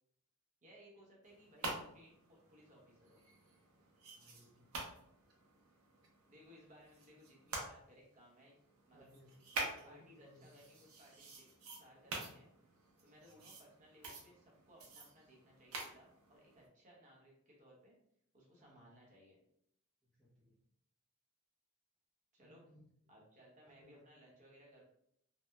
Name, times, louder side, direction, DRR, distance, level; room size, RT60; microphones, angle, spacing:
voice 1, 0.6-3.2 6.3-8.6 8.9-9.1 9.6-11.5 11.8-12.5 13.0-18.0 18.3-19.4 22.3-22.7 23.1-24.8, equal, 35° right, -4 dB, 0.8 m, -62 dB
sound 1, 1.2-7.6 8.1-16.7, right 2 dB, 80° right, 0.6 m, -48 dB
voice 2, 4.2-4.9 8.9-9.4 9.8-10.6 18.6-18.9 20.0-20.6 22.4-22.9 23.6-24.0, left 1 dB, 5° left, -6 dB, 0.4 m, -64 dB
2.8 x 2.0 x 2.2 m, 0.71 s
head